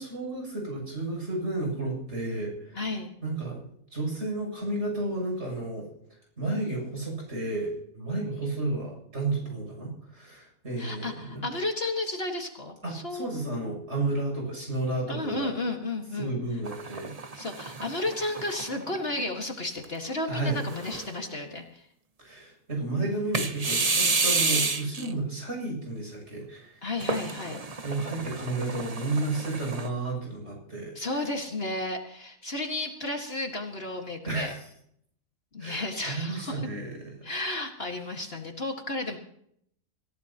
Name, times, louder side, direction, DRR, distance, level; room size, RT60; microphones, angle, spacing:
voice 1, 0.0-2.8 3.2-3.6 3.9-5.8 6.4-11.4 12.8-15.5 16.2-17.1 20.3-20.6 22.2-26.8 27.8-31.2 34.2-34.6 35.6-37.0, right 2 dB, 50° right, 0 dB, 8.3 m, -32 dB
voice 2, 2.7-3.1 10.8-13.3 15.1-16.4 17.3-21.8 23.0-23.2 26.8-27.6 31.0-34.5 35.5-36.7 37.2-39.2, left 2 dB, 45° left, 2 dB, 2.1 m, -33 dB
sound 1, 16.7-19.2 19.8-19.9 20.6-21.2 23.3-25.1 27.0-29.9, right 3 dB, 30° right, 1.0 m, -30 dB
26.5 x 16.0 x 3.0 m, 0.70 s
omnidirectional pair, 1.5 m